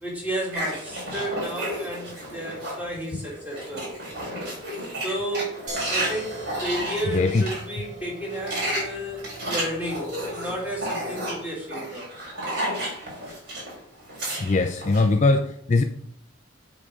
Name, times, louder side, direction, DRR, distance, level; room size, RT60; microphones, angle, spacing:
voice 1, 0.0-3.9 5.0-12.1, right 1 dB, 10° right, -4 dB, 2.1 m, -32 dB
sound 1, 0.5-2.8 3.2-7.6 8.2-13.7 14.0-15.1, right 1 dB, 55° right, 3.5 m, -32 dB
sound 2, 5.7-11.5, right 2 dB, 35° right, 2.1 m, -42 dB
voice 2, 7.1-7.4 14.4-15.8, left 3 dB, 35° left, 6 dB, 0.4 m, -21 dB
8.4 x 4.1 x 4.9 m, 0.69 s
head